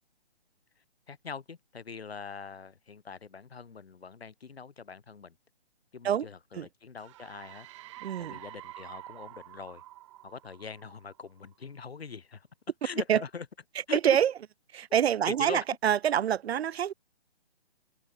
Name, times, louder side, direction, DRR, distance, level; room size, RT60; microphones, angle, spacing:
voice 1, 1.1-5.4 5.9-7.7 8.2-9.8 10.2-12.5 12.8-13.5 13.9-14.0 14.9-15.0 15.3-15.6, left 5 dB, 70° left, 4.6 m, -42 dB
sound 1, 7.0-11.5, right 16 dB, 30° right, 5.6 m, -48 dB
voice 2, 8.0-8.4 13.1-13.2 13.9-14.3 14.7-16.9, right 9 dB, 75° right, 0.5 m, -26 dB
open air
hypercardioid pair, 155°, 32 cm